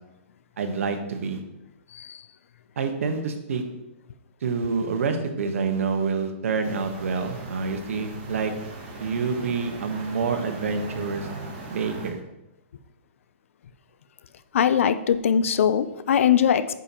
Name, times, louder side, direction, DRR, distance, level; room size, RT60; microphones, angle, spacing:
voice 1, 0.6-1.4 2.8-3.6 4.4-8.5 9.0-11.3 11.7-12.2, right 5 dB, 75° right, 6 dB, 1.3 m, -27 dB
voice 2, 1.9-2.2 14.5-16.8, left 8 dB, 70° left, 13 dB, 0.6 m, -21 dB
sound 1, 6.6-12.1, right 2 dB, 35° right, 2.0 m, -39 dB
8.9 x 6.9 x 3.0 m, 0.90 s
hypercardioid pair, 160°, 7 cm